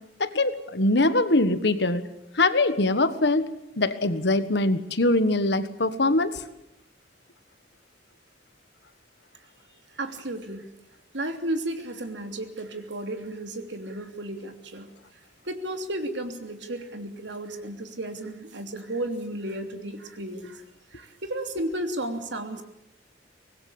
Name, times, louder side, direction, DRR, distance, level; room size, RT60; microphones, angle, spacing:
voice 1, 0.2-2.1 2.3-3.5 3.8-6.4, left 2 dB, 65° left, 11 dB, 1.5 m, -23 dB
voice 2, 9.9-10.7 11.1-14.9 15.4-20.6 20.9-22.6, right 1 dB, 75° right, 6 dB, 3.1 m, -33 dB
24.5 x 20.0 x 8.8 m, 0.82 s
head